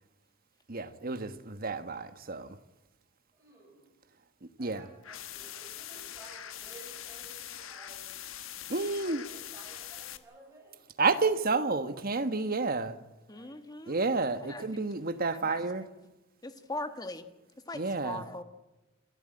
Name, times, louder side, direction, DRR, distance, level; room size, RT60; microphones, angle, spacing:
voice 1, 0.7-2.6 4.6-4.9 8.7-9.2 11.0-13.0 13.9-15.8 17.7-18.2, right 3 dB, 45° right, 1.3 m, -30 dB
voice 2, 3.3-3.8 4.6-8.1 9.0-10.8 13.3-13.5 16.7-16.9, right 2 dB, 15° right, 7.2 m, -54 dB
sound 1, 5.0-10.2, left 11 dB, 85° left, 1.3 m, -43 dB
voice 3, 13.3-14.0 14.5-14.7 15.3-15.6 16.0-16.1 16.4-17.3 17.7-18.4, left 2 dB, 20° left, 1.7 m, -40 dB
28.5 x 13.0 x 8.8 m
head